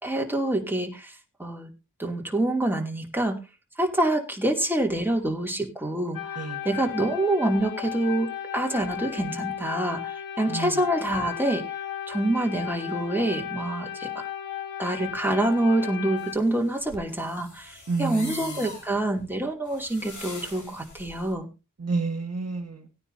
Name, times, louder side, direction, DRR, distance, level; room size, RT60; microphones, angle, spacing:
voice 1, 0.0-1.7 2.0-3.4 3.8-11.6 12.1-14.1 14.8-21.5, right 1 dB, 5° right, 2 dB, 2.6 m, -26 dB
sound 1, 6.1-16.3, left 10 dB, 80° left, 2.4 m, -35 dB
Quadcopter Flyby (Multiple), 16.2-21.3, left 2 dB, 65° left, 3.7 m, -43 dB
voice 2, 17.9-18.5 21.8-22.8, right 4 dB, 50° right, 5 dB, 1.4 m, -30 dB
19.0 x 9.7 x 2.7 m, 0.27 s
wide cardioid pair, 75°, 33 cm